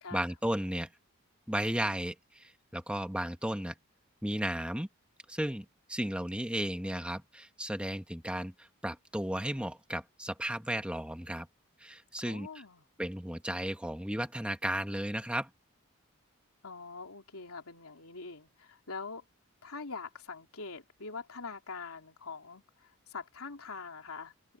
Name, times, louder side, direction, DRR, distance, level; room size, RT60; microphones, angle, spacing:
voice 1, 0.1-0.9 1.5-3.8 4.2-4.9 5.3-11.5 11.8-12.5 13.0-15.5, right 1 dB, 5° right, 1.7 m, -34 dB
voice 2, 12.2-12.8 16.6-19.2 19.6-24.6, left 4 dB, 80° left, 3.1 m, -44 dB
open air
head